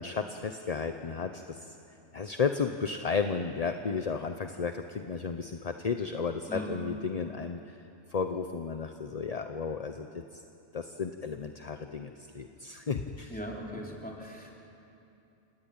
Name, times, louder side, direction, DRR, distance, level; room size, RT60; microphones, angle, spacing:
voice 1, 0.0-1.8 2.1-7.8 8.1-10.1 10.3-10.4 10.7-13.4, left 5 dB, 35° left, 7 dB, 0.7 m, -33 dB
voice 2, 13.3-14.5, equal, 5° left, -2 dB, 3.7 m, -39 dB
29.5 x 18.0 x 8.9 m, 2.8 s
omnidirectional pair, 1.4 m